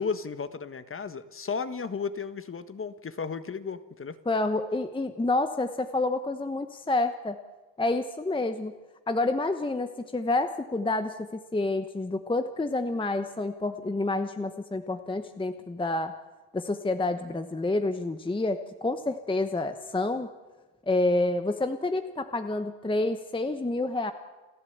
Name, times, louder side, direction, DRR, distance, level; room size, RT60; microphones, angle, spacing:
voice 1, 0.0-4.2, left 5 dB, 25° left, 11 dB, 1.4 m, -34 dB
voice 2, 4.3-7.4 7.8-8.7 9.1-16.1 16.5-20.3 20.9-24.1, left 2 dB, 10° left, 9 dB, 1.1 m, -28 dB
29.5 x 11.0 x 8.0 m, 1.2 s
supercardioid pair, 85°, 50 cm